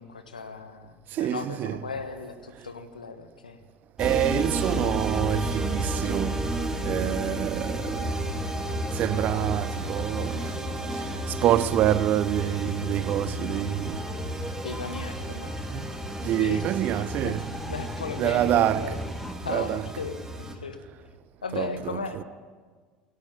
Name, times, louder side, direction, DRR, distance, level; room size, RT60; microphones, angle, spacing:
voice 1, 0.0-3.6 14.6-15.6 16.3-16.6 16.9-17.4 17.7-19.0 19.4-20.8 21.4-22.2, left 5 dB, 80° left, 1.5 m, -36 dB
voice 2, 1.2-1.8 4.0-6.5 6.8-8.1 8.9-10.5 11.3-14.0 15.7-15.8 16.2-17.5 18.2-19.0 19.5-19.8 21.5-22.2, right 12 dB, 45° right, 0.6 m, -26 dB
sound 1, 4.0-20.5, right 1 dB, 15° right, 2.7 m, -32 dB
sound 2, 12.4-19.4, left 1 dB, 5° left, 1.9 m, -41 dB
17.5 x 16.5 x 8.8 m
figure-of-eight pair, 65°, 4 cm